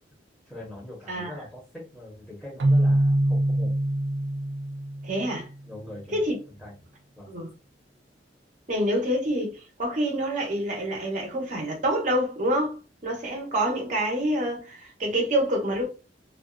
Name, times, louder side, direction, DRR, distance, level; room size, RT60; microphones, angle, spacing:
voice 1, 0.5-3.8 5.7-6.2 6.6-6.7 7.2-7.3, left 1 dB, ahead, 0.9 m, -42 dB
Keyboard (musical), 2.6-5.5, right 1 dB, 75° right, 0.4 m, -24 dB
voice 2, 5.0-5.5 6.1-6.4 7.3-7.5 8.7-15.9, equal, 45° right, 1.0 m, -27 dB
2.5 x 2.3 x 2.3 m
head